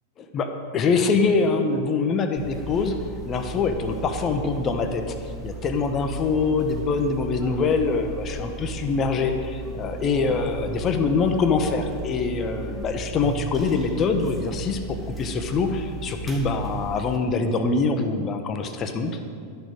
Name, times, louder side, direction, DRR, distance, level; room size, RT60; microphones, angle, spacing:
voice 1, 0.2-3.0 3.2-5.1 5.4-19.1, left 4 dB, 30° left, 7 dB, 0.8 m, -24 dB
sound 1, 2.4-17.2, right 3 dB, 5° left, 1.3 m, -36 dB
11.5 x 6.2 x 5.2 m, 2.3 s
figure-of-eight pair, 90°, 0 cm